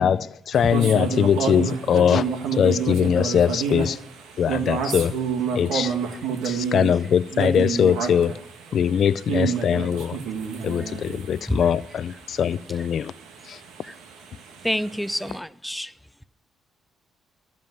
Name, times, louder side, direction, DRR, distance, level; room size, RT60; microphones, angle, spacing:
voice 1, 0.0-4.0 4.4-5.2 5.5-5.9 6.4-8.4 8.7-10.2 10.6-13.1 13.5-13.6, left 8 dB, 60° left, 0.4 m, -22 dB
sound 1, 0.5-15.3, right 6 dB, 90° right, 1.8 m, -29 dB
voice 2, 14.6-15.9, equal, ahead, 0.5 m, -27 dB
14.5 x 5.4 x 9.4 m
cardioid pair, 90°, 0 cm